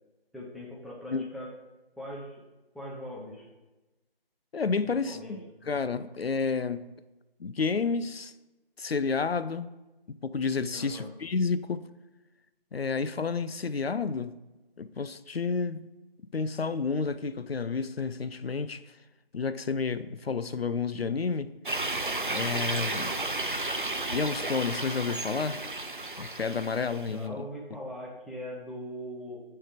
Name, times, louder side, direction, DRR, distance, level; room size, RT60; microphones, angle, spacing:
voice 1, 0.3-1.5 2.0-2.4 2.7-3.5 4.8-5.7 10.7-11.1 27.1-29.4, equal, ahead, -5 dB, 0.6 m, -41 dB
voice 2, 4.5-5.4 5.7-6.9 7.4-8.3 8.8-9.7 10.1-11.8 12.7-14.4 14.8-15.8 16.3-18.8 19.3-21.5 22.3-23.2 24.1-25.6 26.2-27.4, left 5 dB, 75° left, 13 dB, 0.5 m, -30 dB
sound 1, 21.7-27.2, right 2 dB, 55° right, 0.5 m, -33 dB
9.0 x 3.3 x 5.1 m, 1.1 s
figure-of-eight pair, 175°, 30 cm